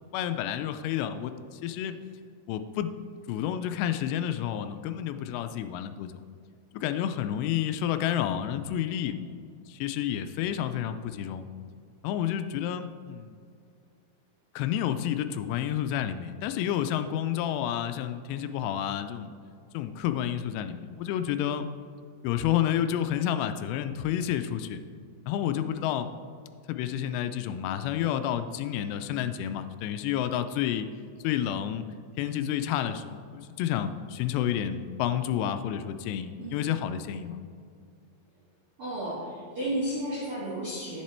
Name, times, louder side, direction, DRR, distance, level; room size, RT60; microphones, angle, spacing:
voice 1, 0.1-1.9 2.5-2.9 3.3-6.1 6.7-9.2 9.7-11.5 12.0-13.4 14.6-19.3 19.7-21.7 22.2-24.8 25.3-26.1 26.7-30.9 31.2-31.9 32.2-37.4, left 10 dB, 85° left, 9 dB, 2.6 m, -30 dB
voice 2, 36.4-36.7 38.8-41.0, right 1 dB, 45° right, -8 dB, 2.0 m, -33 dB
10.5 x 7.5 x 4.3 m, 2.3 s
omnidirectional pair, 5.1 m